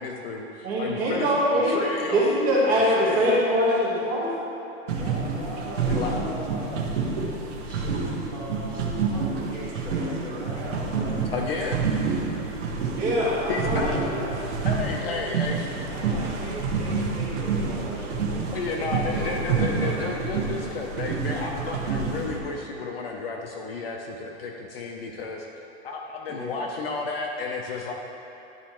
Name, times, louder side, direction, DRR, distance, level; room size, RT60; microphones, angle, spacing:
voice 1, 0.0-0.5 0.8-2.3 2.7-3.4 5.9-6.2 11.3-11.8 13.5-14.0 14.6-15.7 18.5-25.5 25.8-27.9, left 4 dB, 50° left, 1 dB, 0.6 m, -32 dB
voice 2, 0.6-1.8 2.1-4.3 12.9-14.3, equal, 20° right, -7 dB, 1.3 m, -23 dB
voice 3, 4.9-6.9 7.6-11.2 15.6-20.4 26.3-26.6, equal, 5° left, -10 dB, 1.3 m, -38 dB
sound 1, 4.9-22.4, right 4 dB, 70° right, 1.1 m, -28 dB
11.0 x 4.2 x 3.0 m, 3.0 s
supercardioid pair, 170°, 38 cm